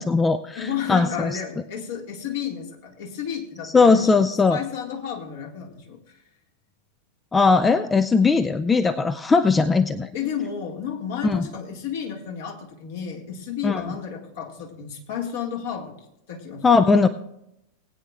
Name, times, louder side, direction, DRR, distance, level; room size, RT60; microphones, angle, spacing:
voice 1, 0.0-1.4 3.6-4.6 7.3-10.1 11.2-11.5 13.6-13.9 16.6-17.1, left 4 dB, 15° left, 11 dB, 0.4 m, -19 dB
voice 2, 0.6-4.1 4.5-6.0 10.1-16.0 16.3-16.8, left 8 dB, 55° left, 1 dB, 2.0 m, -32 dB
19.5 x 9.1 x 2.5 m, 0.82 s
figure-of-eight pair, 90°, 0 cm